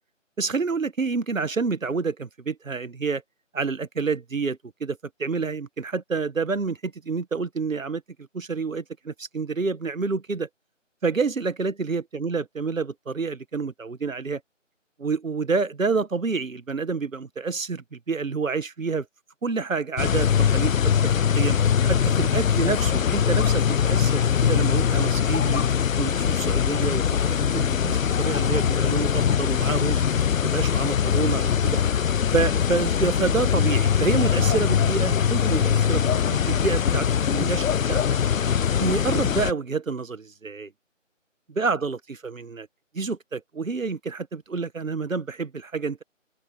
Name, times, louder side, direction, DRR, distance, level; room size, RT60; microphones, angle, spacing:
voice 1, 0.4-3.2 3.5-8.0 8.3-10.5 11.0-14.4 15.0-19.1 19.4-25.6 26.0-30.0 30.4-31.8 32.3-38.0 38.8-40.7 41.5-42.7 42.9-46.0, right 4 dB, 85° right, 1.5 m, -28 dB
sound 1, 20.0-39.5, left 8 dB, 90° left, 0.6 m, -22 dB
open air
figure-of-eight pair, 165°, 39 cm